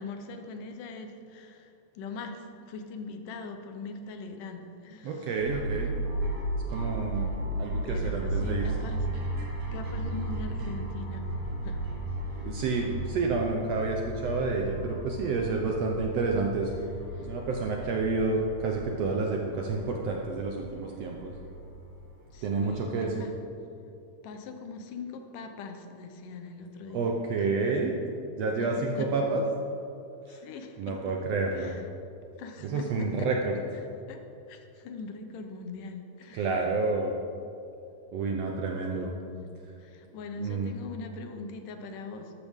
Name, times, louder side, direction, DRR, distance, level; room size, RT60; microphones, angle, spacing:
voice 1, 0.0-5.3 7.5-9.1 9.7-11.9 12.2-12.6 17.1-17.3 22.3-23.3 24.2-27.1 27.4-27.5 28.6-29.1 30.3-31.1 31.6-31.9 32.4-33.3 33.7-33.8 34.1-34.2 34.5-36.5 38.9-39.5 39.8-42.3, left 4 dB, 75° left, 6 dB, 2.4 m, -41 dB
voice 2, 5.0-6.0 6.7-8.7 12.4-16.7 17.2-21.3 22.4-23.1 26.9-28.0 28.3-29.4 30.3-30.4 30.8-31.8 32.6-33.6 36.3-37.2 38.1-39.1 40.4-40.7, right 3 dB, 75° right, 1 dB, 1.5 m, -29 dB
sound 1, 5.4-22.9, right 1 dB, 60° right, 3.2 m, -35 dB
13.0 x 12.0 x 3.6 m, 2.7 s
omnidirectional pair, 3.8 m